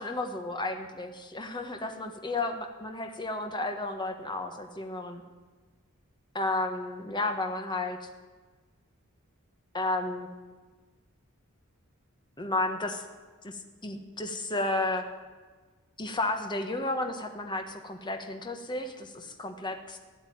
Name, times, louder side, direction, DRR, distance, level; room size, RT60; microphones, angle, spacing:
voice 1, 0.0-5.2 6.3-8.1 9.7-10.3 12.4-13.0 13.4-15.0 16.0-20.0, left 2 dB, 20° left, 5 dB, 1.3 m, -32 dB
14.5 x 10.5 x 9.3 m, 1.3 s
head